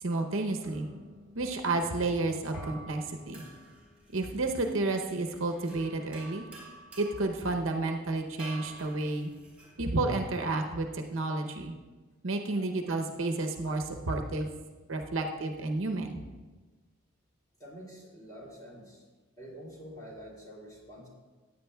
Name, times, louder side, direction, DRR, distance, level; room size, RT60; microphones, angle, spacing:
voice 1, 0.0-0.9 1.3-3.4 4.1-6.5 7.0-9.3 9.8-11.7 12.2-14.5 14.9-16.2, right 2 dB, 65° right, 4 dB, 0.8 m, -31 dB
sound 1, 0.6-9.8, right 1 dB, 5° right, 3.0 m, -51 dB
voice 2, 17.6-19.0 19.4-21.1, equal, 20° left, -4 dB, 2.8 m, -47 dB
14.5 x 9.1 x 2.3 m, 1.3 s
head